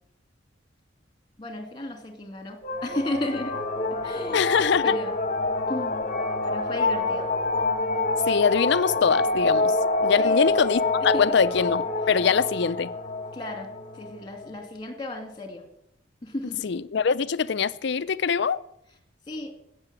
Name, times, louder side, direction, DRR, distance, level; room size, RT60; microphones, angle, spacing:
voice 1, 1.4-3.6 3.9-4.4 4.8-5.1 5.7-6.0 6.4-7.3 10.2-10.4 11.1-11.2 13.3-15.7 16.2-16.7 19.3-19.6, left 1 dB, 25° left, 2.4 m, -34 dB
sound 1, 2.6-14.5, left 2 dB, 40° left, 1.3 m, -26 dB
voice 2, 4.3-5.0 8.3-9.8 10.0-12.9 16.6-18.6, left 6 dB, 60° left, 0.5 m, -23 dB
16.5 x 6.9 x 8.8 m
head